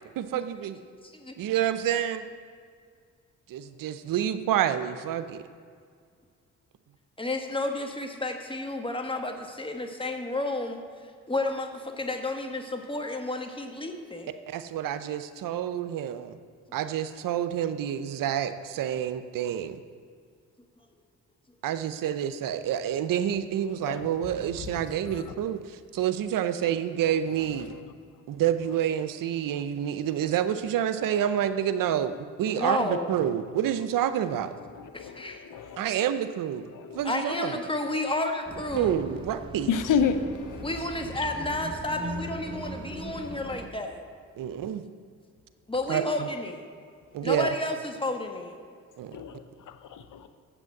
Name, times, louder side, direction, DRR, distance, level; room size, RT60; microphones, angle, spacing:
voice 1, 0.2-0.8 1.4-2.2 3.5-5.4 14.5-16.4 16.7-19.8 21.6-27.7 28.3-34.5 35.8-36.7 36.9-37.6 38.7-39.7 44.4-44.8 45.9-46.3 47.1-47.5 49.0-49.2, right 10 dB, 75° right, 11 dB, 0.7 m, -28 dB
voice 2, 1.0-1.3 7.2-10.8 11.3-14.3 32.5-33.1 34.7-35.4 37.0-39.0 40.6-44.0 45.7-46.6 47.2-48.6, left 2 dB, 15° left, 4 dB, 1.4 m, -31 dB
voice 3, 34.7-35.8 36.7-37.0 39.7-40.7 47.3-47.4 49.1-50.3, left 6 dB, 70° left, 10 dB, 0.8 m, -30 dB
sound 1, 38.4-43.7, right 1 dB, 15° right, 1.3 m, -39 dB
7.7 x 6.1 x 7.8 m, 2.1 s
supercardioid pair, 55°, 33 cm